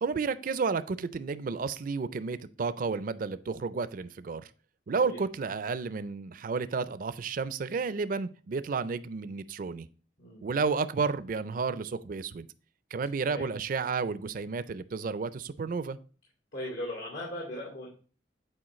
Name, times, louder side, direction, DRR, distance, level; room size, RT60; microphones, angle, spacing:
voice 1, 0.0-4.5 4.9-9.9 10.4-12.5 12.9-16.0, right 4 dB, 50° right, 0.4 m, -31 dB
voice 2, 16.5-17.9, left 1 dB, 85° left, 2.4 m, -38 dB
8.7 x 4.5 x 3.0 m
head